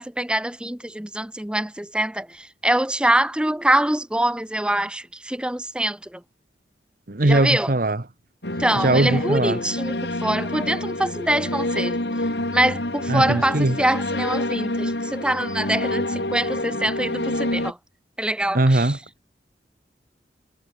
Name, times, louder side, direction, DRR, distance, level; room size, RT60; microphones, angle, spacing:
voice 1, 0.0-6.2 7.2-7.7 8.6-12.0 12.5-17.8 18.2-18.9, right 1 dB, 5° right, 0.7 m, -24 dB
voice 2, 7.1-8.0 8.7-9.6 13.1-13.8 18.5-19.0, right 2 dB, 50° right, 1.2 m, -20 dB
sound 1, 8.4-17.7, left 1 dB, 70° left, 5.1 m, -27 dB
head